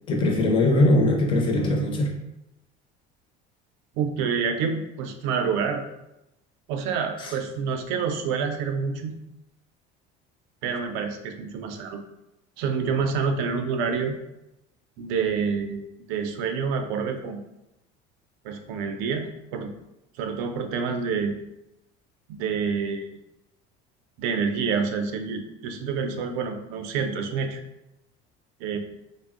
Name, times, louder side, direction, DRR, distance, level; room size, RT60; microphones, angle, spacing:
voice 1, 0.1-2.1 7.2-7.3, left 1 dB, 25° left, 1 dB, 0.5 m, -21 dB
voice 2, 4.0-5.8 6.7-9.2 10.6-12.0 12.6-14.2 15.0-15.8 16.1-17.4 18.4-19.7 20.2-21.3 22.3-23.1 24.2-27.6 28.6-28.8, right 5 dB, 75° right, 5 dB, 0.4 m, -27 dB
3.3 x 2.0 x 2.4 m, 0.88 s
cardioid pair, 145°, 20 cm